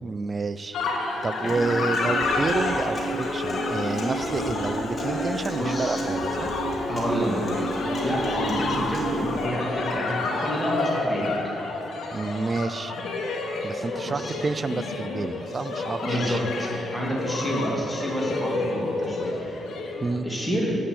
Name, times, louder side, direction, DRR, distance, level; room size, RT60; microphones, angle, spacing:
voice 1, 0.0-0.8 1.2-6.5 12.1-12.9 13.6-16.4 20.0-20.3, right 3 dB, 35° right, 14 dB, 0.3 m, -29 dB
sound 1, 0.7-20.2, left 3 dB, 75° left, 1.2 m, -30 dB
Human voice / Acoustic guitar, 1.5-9.5, right 1 dB, 30° left, 2.0 m, -30 dB
voice 2, 5.6-6.0 6.9-7.5 8.0-11.4 14.0-14.4 16.0-19.6 20.2-20.8, equal, 5° left, -4 dB, 2.1 m, -28 dB
8.4 x 5.6 x 7.5 m, 2.8 s
cardioid pair, 95°, 0 cm